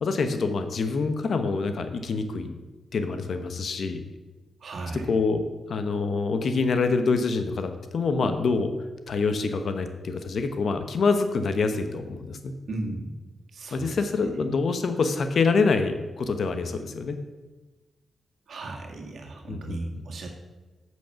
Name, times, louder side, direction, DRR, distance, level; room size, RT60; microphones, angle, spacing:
voice 1, 0.0-2.6 2.9-4.0 4.9-8.7 9.1-12.5 13.7-17.2 19.5-19.8, left 4 dB, 65° left, 8 dB, 1.0 m, -26 dB
voice 2, 4.6-5.1 12.7-13.3 13.5-14.0 14.4-14.5 18.5-20.3, right 2 dB, 70° right, 2 dB, 1.8 m, -35 dB
8.8 x 6.3 x 5.8 m, 1.2 s
cardioid pair, 55°, 0 cm